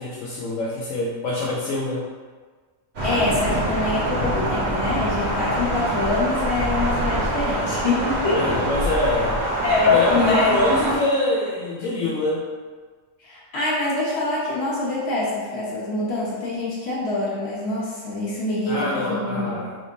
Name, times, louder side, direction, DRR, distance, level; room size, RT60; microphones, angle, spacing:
voice 1, 0.0-2.1 8.3-9.4 9.8-12.4 18.7-19.8, left 1 dB, 80° left, -4 dB, 1.0 m, -24 dB
voice 2, 3.0-8.6 9.6-10.6 13.2-19.6, left 3 dB, 50° left, -8 dB, 1.5 m, -25 dB
Thunder, 3.0-11.0, right 1 dB, 55° right, 1.2 m, -24 dB
3.5 x 3.4 x 2.6 m, 1.5 s
omnidirectional pair, 1.4 m